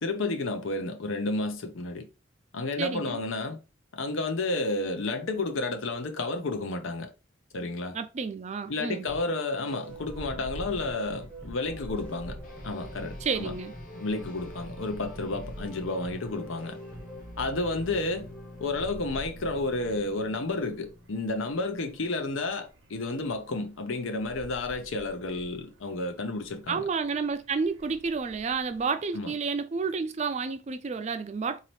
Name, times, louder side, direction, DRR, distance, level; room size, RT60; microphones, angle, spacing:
voice 1, 0.0-2.1 2.5-3.6 3.9-7.1 7.5-8.0 8.7-12.4 12.6-13.5 13.9-16.8 17.4-18.3 18.6-26.8 29.1-29.3, left 2 dB, 80° left, 0.7 m, -31 dB
voice 2, 2.8-3.2 7.9-9.0 13.2-13.7 26.7-31.6, right 5 dB, 35° right, 0.3 m, -30 dB
sound 1, 9.1-19.2, equal, 5° left, 0.6 m, -45 dB
sound 2, 9.9-28.9, right 1 dB, 90° right, 0.9 m, -48 dB
sound 3, 12.4-22.1, left 1 dB, 40° left, 0.7 m, -49 dB
4.0 x 2.8 x 3.1 m
head